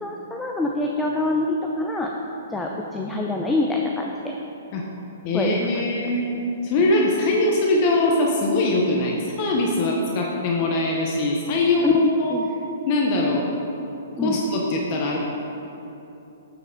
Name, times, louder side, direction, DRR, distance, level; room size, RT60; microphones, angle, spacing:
voice 1, 0.0-2.1 2.5-4.1 5.3-5.5 11.8-12.5 14.2-14.4, left 2 dB, 5° left, 0 dB, 0.5 m, -25 dB
voice 2, 5.2-6.3 6.6-12.4 12.9-13.5 14.2-15.2, left 2 dB, 40° left, -1 dB, 0.9 m, -22 dB
9.1 x 6.0 x 3.8 m, 3.0 s
hypercardioid pair, 145°, 0 cm